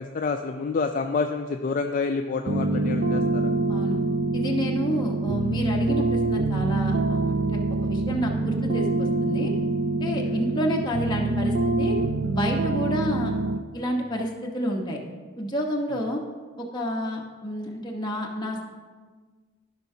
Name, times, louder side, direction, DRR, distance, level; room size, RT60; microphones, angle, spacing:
voice 1, 0.0-3.5 10.2-10.4, left 4 dB, 40° left, 5 dB, 0.3 m, -28 dB
sound 1, 2.5-13.6, right 2 dB, 50° right, 0.5 m, -25 dB
voice 2, 3.7-4.0 4.3-9.5 10.0-12.0 12.3-13.3 13.7-15.0 15.4-16.2 16.6-18.6, equal, 20° left, -1 dB, 1.1 m, -29 dB
14.0 x 5.8 x 2.8 m, 1.4 s
head